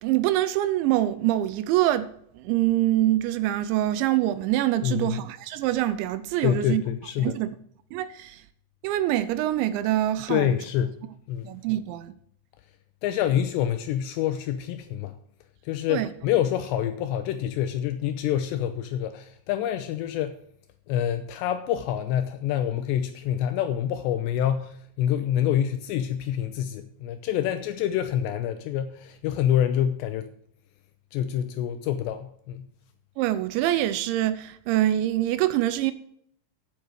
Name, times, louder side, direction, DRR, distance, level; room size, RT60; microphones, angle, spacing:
voice 1, 0.0-6.8 7.2-7.6 7.9-8.4 8.8-10.6 11.4-12.1 15.9-16.1 33.2-35.9, right 14 dB, 80° right, 2.8 m, -25 dB
voice 2, 4.8-5.2 6.4-7.4 10.3-11.0 11.3-11.5 13.0-15.2 15.7-20.4 20.9-30.3 31.1-32.7, left 10 dB, 85° left, 2.5 m, -27 dB
9.6 x 7.7 x 6.3 m
omnidirectional pair, 5.5 m